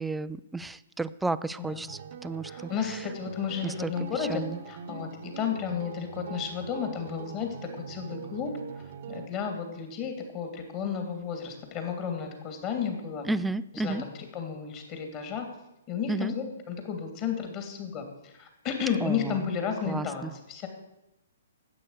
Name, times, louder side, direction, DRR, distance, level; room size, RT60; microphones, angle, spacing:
voice 1, 0.0-2.7 3.6-3.9 4.3-4.6 13.3-14.0 16.1-16.3 19.0-19.4 19.8-20.3, right 3 dB, 5° right, 15 dB, 0.4 m, -32 dB
voice 2, 1.6-1.9 2.4-13.3 13.7-15.5 15.9-20.7, left 7 dB, 30° left, 5 dB, 3.0 m, -33 dB
sound 1, 1.9-9.3, right 6 dB, 50° right, 1.1 m, -42 dB
12.0 x 8.6 x 8.3 m, 0.91 s
figure-of-eight pair, 125°, 0 cm